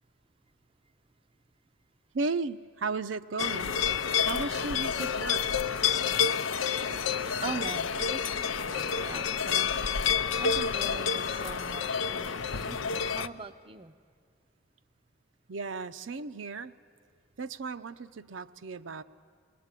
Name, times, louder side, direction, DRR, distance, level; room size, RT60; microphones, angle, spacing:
voice 1, 2.1-3.8 4.2-5.4 15.5-16.7 17.4-19.0, right 4 dB, 70° right, 9 dB, 0.6 m, -35 dB
sound 1, 3.4-13.3, left 7 dB, 80° left, 0.6 m, -29 dB
voice 2, 7.4-8.3 8.7-9.7 10.4-12.8 13.1-13.9, right 4 dB, 30° right, 9 dB, 0.5 m, -41 dB
28.0 x 20.5 x 8.2 m, 2.1 s
head